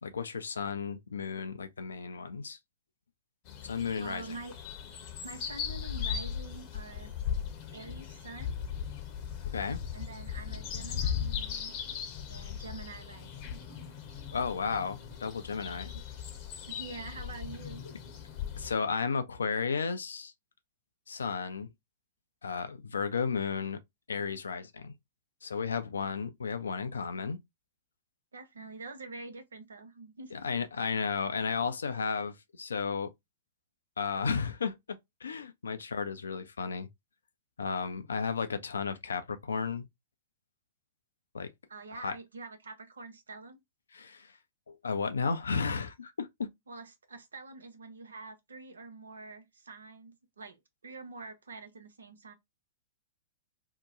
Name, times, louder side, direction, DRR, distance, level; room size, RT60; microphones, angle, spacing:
voice 1, 0.0-2.6 3.6-4.4 9.5-9.8 14.3-15.9 18.6-20.3 21.1-21.7 22.4-23.8 24.1-24.9 25.4-27.4 30.3-33.1 34.0-36.9 37.6-39.9 41.3-41.5 41.9-42.2 43.9-44.4 44.7-46.5, left 5 dB, 80° left, 0.5 m, -33 dB
sound 1, 3.5-18.7, left 8 dB, 40° left, 0.8 m, -38 dB
voice 2, 4.0-4.5 5.2-7.1 7.7-8.5 9.9-11.7 12.3-13.6 15.9-16.0 16.7-17.8 28.3-30.5 41.7-43.6 46.7-52.3, right 3 dB, 80° right, 0.8 m, -46 dB
2.8 x 2.2 x 3.7 m
figure-of-eight pair, 105°, 0 cm